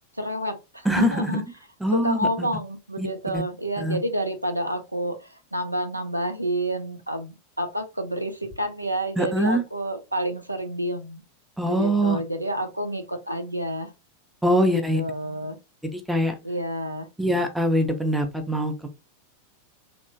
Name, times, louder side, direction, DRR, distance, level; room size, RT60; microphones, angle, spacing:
voice 1, 0.1-1.4 1.9-11.2 11.7-13.9 14.6-15.6 16.4-17.1, right 1 dB, 85° right, 0.4 m, -29 dB
voice 2, 0.9-1.4 1.8-2.2 3.0-3.1 3.3-3.4 3.8-4.0 9.2-9.6 11.6-12.2 14.4-15.0 15.9-16.3 17.2-18.9, right 1 dB, 5° right, 0.6 m, -23 dB
2.9 x 2.1 x 2.7 m
figure-of-eight pair, 90°, 0 cm